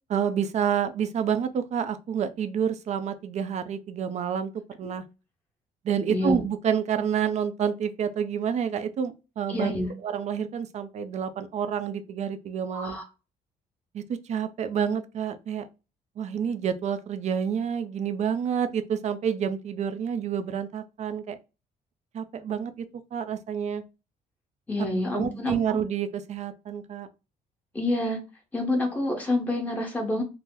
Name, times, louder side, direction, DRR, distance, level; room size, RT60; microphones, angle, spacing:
voice 1, 0.1-4.5 4.8-5.0 5.8-9.7 10.0-13.0 13.9-15.7 16.2-21.4 22.1-22.9 23.1-23.8 25.1-27.1, right 7 dB, 50° right, 0.4 m, -28 dB
voice 2, 6.1-6.4 9.5-9.9 12.7-13.0 24.7-25.8 27.7-28.2 28.5-30.2, left 1 dB, 10° left, 1.1 m, -27 dB
2.8 x 2.0 x 3.6 m
cardioid pair, 110°, 16 cm